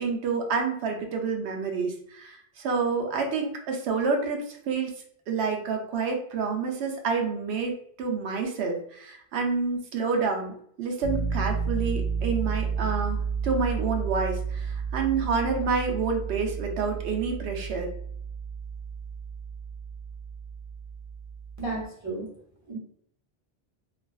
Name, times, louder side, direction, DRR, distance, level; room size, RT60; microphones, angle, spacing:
voice 1, 0.0-4.9 5.3-7.7 8.0-17.9, right 5 dB, 90° right, 3 dB, 0.8 m, -28 dB
Piano, 11.0-21.8, right 5 dB, 40° left, 0.4 m, -32 dB
voice 2, 21.6-22.3 22.7-22.8, right 2 dB, 20° right, -5 dB, 0.7 m, -33 dB
2.4 x 2.3 x 2.2 m, 0.66 s
omnidirectional pair, 1.1 m